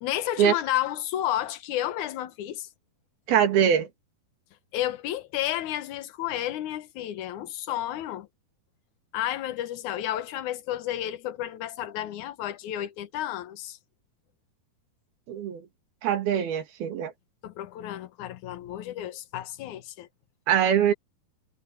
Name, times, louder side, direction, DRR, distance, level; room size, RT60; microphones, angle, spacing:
voice 1, 0.0-2.7 4.7-8.3 9.1-13.8 17.4-20.1, left 13 dB, 65° left, 2.3 m, -31 dB
voice 2, 3.3-3.9 15.3-15.7 16.0-17.1 20.5-20.9, right 9 dB, 80° right, 4.1 m, -23 dB
omnidirectional pair, 4.3 m